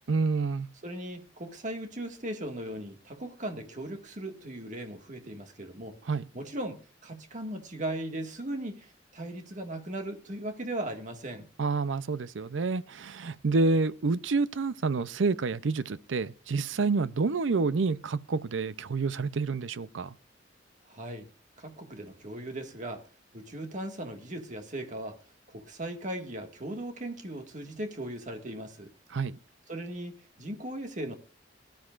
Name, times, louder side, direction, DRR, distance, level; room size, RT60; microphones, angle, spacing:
voice 1, 0.1-0.7 6.1-6.3 11.6-20.1 29.1-29.4, right 4 dB, 80° right, 0.6 m, -28 dB
voice 2, 0.8-6.0 6.3-11.5 20.9-21.3 21.6-23.0 23.3-25.2 25.5-28.9 29.7-31.2, right 1 dB, 40° right, 1.8 m, -38 dB
21.0 x 12.0 x 2.5 m
head